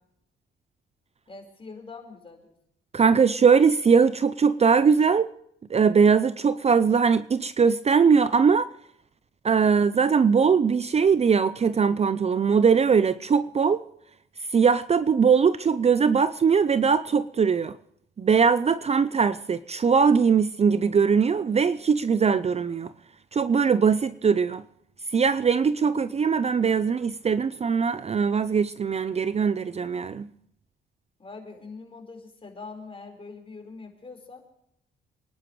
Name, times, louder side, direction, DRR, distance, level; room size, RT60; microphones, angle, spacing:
voice 1, 1.3-2.6 31.2-34.4, left 4 dB, 25° left, 4.8 m, -43 dB
voice 2, 2.9-5.3 5.7-8.7 9.4-13.8 14.5-17.8 18.2-22.9 23.3-24.6 25.1-30.3, right 6 dB, 30° right, 0.6 m, -21 dB
28.0 x 11.0 x 3.2 m
cardioid pair, 90°, 20 cm